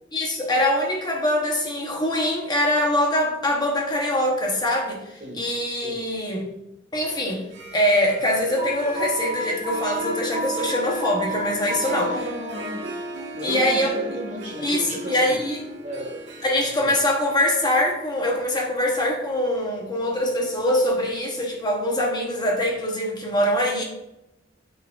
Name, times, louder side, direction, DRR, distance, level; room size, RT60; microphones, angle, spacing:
voice 1, 0.1-6.5 6.9-7.4 7.7-12.1 13.4-13.9 14.6-15.6 16.4-23.8, left 1 dB, 20° left, 0 dB, 0.9 m, -23 dB
Harp, 7.4-20.3, equal, 65° right, 1.4 m, -37 dB
Alarm, 8.6-12.1, right 1 dB, 10° right, 2.3 m, -31 dB
voice 2, 11.8-12.9 13.3-15.4 15.8-16.3 16.6-17.0, equal, 40° right, 0 dB, 1.6 m, -34 dB
7.3 x 6.0 x 2.4 m, 0.86 s
head